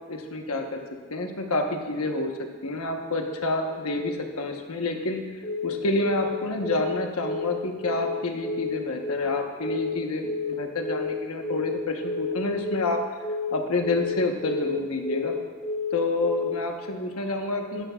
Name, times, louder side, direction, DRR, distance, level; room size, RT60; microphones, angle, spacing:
voice 1, 0.1-0.8 1.1-2.3 2.6-5.2 5.6-13.0 13.5-15.3 15.9-17.8, left 2 dB, 85° left, 3 dB, 1.1 m, -28 dB
Telephone, 5.4-5.7 6.0-6.3 6.6-6.9 7.2-7.5 7.8-8.1 8.4-8.7 9.0-9.3 9.6-9.9 10.2-10.5 10.8-11.1 11.4-11.7 12.0-12.3 12.6-12.9 13.2-13.5 13.8-14.1 14.4-14.7 15.0-15.3 15.6-15.9 16.2-16.5, left 3 dB, 25° left, 1.5 m, -30 dB
13.0 x 10.5 x 2.4 m, 1.5 s
head